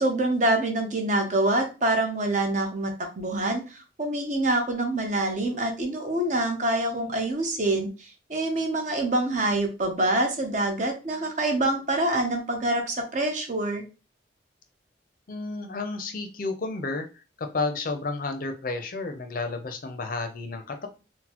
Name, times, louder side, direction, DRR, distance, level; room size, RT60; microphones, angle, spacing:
voice 1, 0.0-13.8, right 1 dB, 40° right, 3 dB, 0.7 m, -26 dB
voice 2, 15.3-17.1 17.4-20.9, left 3 dB, 50° left, 6 dB, 0.5 m, -31 dB
3.9 x 2.0 x 2.8 m, 0.31 s
head